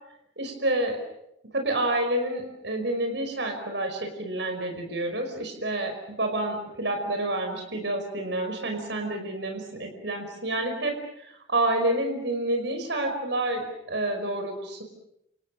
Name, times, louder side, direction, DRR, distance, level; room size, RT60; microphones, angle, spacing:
voice 1, 0.4-1.0 1.5-11.0 11.2-14.8, right 1 dB, 70° right, 4 dB, 5.4 m, -29 dB
29.0 x 28.5 x 6.5 m, 0.80 s
head